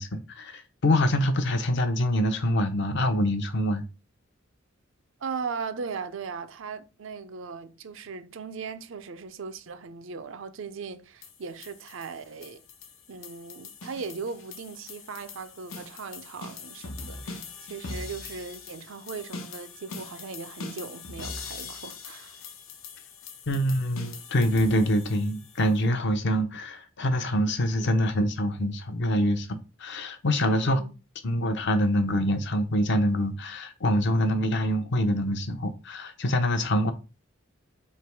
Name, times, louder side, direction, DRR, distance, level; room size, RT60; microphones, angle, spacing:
voice 1, 0.0-3.8 23.5-30.8 31.2-36.9, equal, 60° left, 0.6 m, -25 dB
voice 2, 5.2-12.6 13.1-17.4 17.7-22.4 27.8-27.9 30.4-30.9, right 5 dB, 70° right, 0.5 m, -38 dB
sound 1, 11.2-25.8, left 4 dB, 85° left, 0.8 m, -42 dB
3.3 x 2.9 x 4.5 m
head